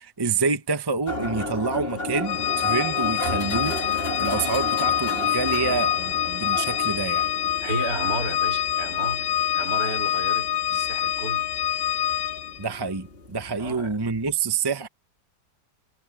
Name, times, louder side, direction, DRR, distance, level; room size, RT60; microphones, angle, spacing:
voice 1, 0.0-3.8 4.2-7.3 12.6-14.9, right 4 dB, 20° right, 0.8 m, -27 dB
sound 1, 1.1-14.3, left 1 dB, 35° left, 2.8 m, -34 dB
Organ, 2.2-12.7, left 10 dB, 90° left, 0.5 m, -26 dB
voice 2, 7.6-11.5 13.6-14.0, right 2 dB, 60° right, 3.1 m, -33 dB
omnidirectional pair, 1.8 m